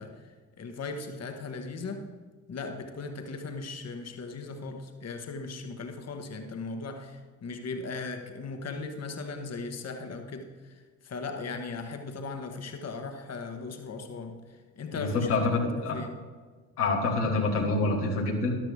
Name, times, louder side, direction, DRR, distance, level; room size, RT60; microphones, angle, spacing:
voice 1, 0.0-2.1 2.5-16.2, left 4 dB, 35° left, 6 dB, 1.4 m, -38 dB
voice 2, 15.0-16.0 16.8-18.5, left 3 dB, 80° left, -1 dB, 1.7 m, -26 dB
13.5 x 12.0 x 3.5 m, 1.5 s
figure-of-eight pair, 45°, 46 cm